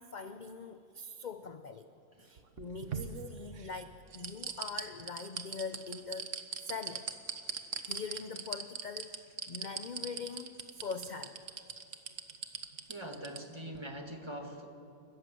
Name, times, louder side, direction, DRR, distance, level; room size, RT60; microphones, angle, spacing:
voice 1, 0.0-1.9 2.2-6.3 6.6-7.1 7.9-11.4, left 4 dB, 45° left, 9 dB, 0.6 m, -43 dB
sound 1, 2.4-3.7 4.1-13.4 13.7-13.8, right 6 dB, 60° right, 1.4 m, -39 dB
voice 2, 12.9-14.7, equal, 20° right, 3 dB, 1.9 m, -43 dB
29.5 x 13.5 x 7.7 m, 2.6 s
omnidirectional pair, 1.5 m